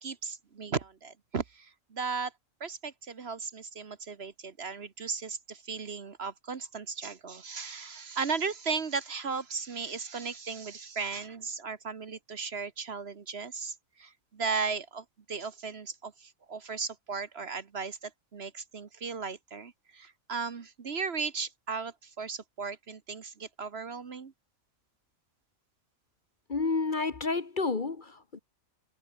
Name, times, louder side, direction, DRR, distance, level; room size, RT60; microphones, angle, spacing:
voice 1, 0.0-2.3 2.6-24.3, right 5 dB, 50° right, 1.4 m, -36 dB
voice 2, 26.5-28.4, left 4 dB, 40° left, 1.4 m, -30 dB
omnidirectional pair, 1.4 m